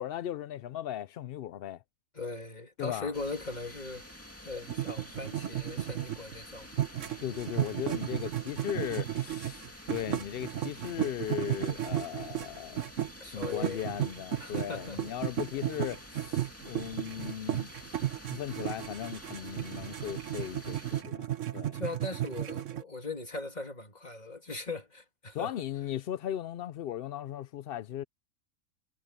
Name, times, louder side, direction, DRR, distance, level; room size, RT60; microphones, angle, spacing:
voice 1, 0.0-1.8 2.8-3.1 7.2-12.9 13.2-17.7 18.3-21.3 21.5-21.7 25.3-28.0, left 11 dB, 60° left, 0.6 m, -37 dB
voice 2, 2.1-6.7 13.2-13.8 14.4-15.0 21.7-25.5, left 3 dB, 30° left, 2.9 m, -39 dB
sound 1, 3.1-21.0, left 1 dB, 10° left, 2.3 m, -49 dB
sound 2, 4.7-6.3 6.7-13.1 13.4-22.8, right 12 dB, 70° right, 1.3 m, -34 dB
omnidirectional pair, 1.4 m